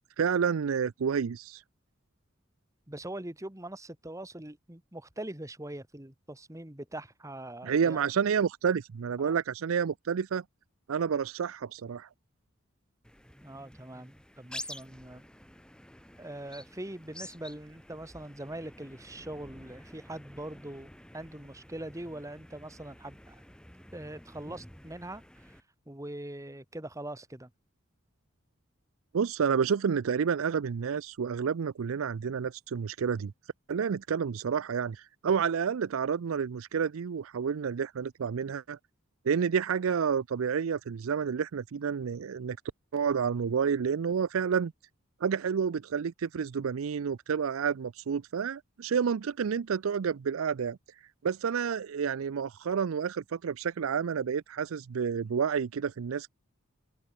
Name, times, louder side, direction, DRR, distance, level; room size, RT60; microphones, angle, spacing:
voice 1, 0.2-1.6 7.6-10.4 10.9-12.1 29.1-33.3 33.7-38.8 39.2-42.6 42.9-44.7 45.2-50.8 51.2-56.3, right 6 dB, 80° right, 0.4 m, -29 dB
voice 2, 2.9-8.1 9.2-9.3 13.4-15.3 16.2-23.4 23.9-25.2 25.9-27.5, right 1 dB, 15° right, 1.7 m, -42 dB
sound 1, 13.0-25.6, left 1 dB, 5° left, 3.4 m, -49 dB
open air
head